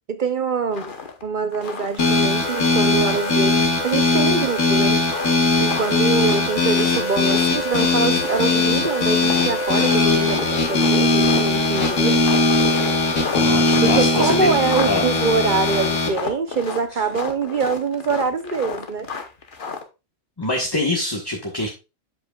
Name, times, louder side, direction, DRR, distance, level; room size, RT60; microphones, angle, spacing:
voice 1, 0.1-0.9 1.2-5.0 5.6-12.2 13.8-19.1, right 5 dB, 50° right, 0.7 m, -24 dB
sound 1, 0.7-1.2 1.5-3.0 3.3-4.4 5.0-19.8, left 5 dB, 45° left, 1.1 m, -33 dB
sound 2, 2.0-16.1, left 3 dB, 85° left, 1.8 m, -19 dB
voice 2, 13.3-14.5 14.9-15.0 20.4-21.7, left 1 dB, 20° left, 1.2 m, -24 dB
7.9 x 7.8 x 2.3 m
omnidirectional pair, 1.3 m